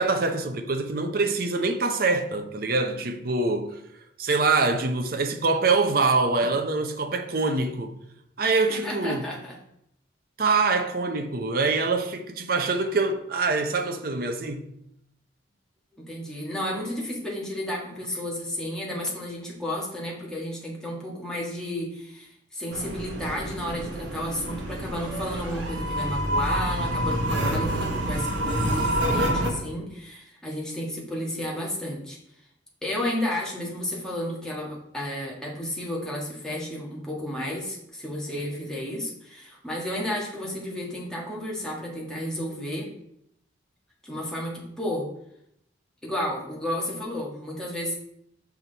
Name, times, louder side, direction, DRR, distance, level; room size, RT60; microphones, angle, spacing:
voice 1, 0.0-3.8 4.2-7.9 8.4-9.3 10.4-14.7, right 3 dB, 50° right, 0.7 m, -24 dB
voice 2, 8.5-9.6 11.6-11.7 15.9-32.2 32.8-42.9 44.0-45.1 46.0-47.9, left 1 dB, 5° left, 1.7 m, -32 dB
sound 1, 22.7-29.5, right 1 dB, 85° right, 1.3 m, -27 dB
6.1 x 5.9 x 4.0 m
head